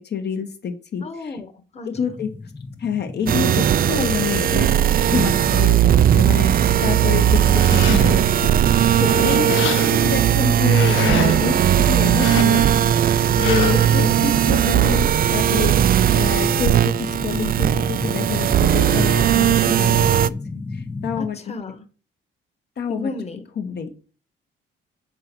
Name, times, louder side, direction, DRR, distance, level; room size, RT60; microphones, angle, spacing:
voice 1, 0.0-1.4 1.8-2.3 2.8-4.8 5.0-6.5 6.8-12.7 13.1-20.3 20.7-21.5 22.8-23.1 23.6-24.0, left 6 dB, 55° left, 5 dB, 1.3 m, -27 dB
voice 2, 1.0-2.2 13.7-14.0 21.2-21.8 22.9-23.4, left 3 dB, 30° left, 6 dB, 1.4 m, -33 dB
sound 1, 1.9-21.3, left 3 dB, 10° left, 0.6 m, -34 dB
sound 2, 3.3-20.3, right 10 dB, 50° right, 0.4 m, -18 dB
sound 3, 7.4-8.3 8.8-10.2 10.6-11.5 12.1-12.8 13.4-14.0, left 13 dB, 85° left, 0.5 m, -30 dB
7.5 x 3.9 x 6.1 m, 0.37 s
cardioid pair, 90°, 20 cm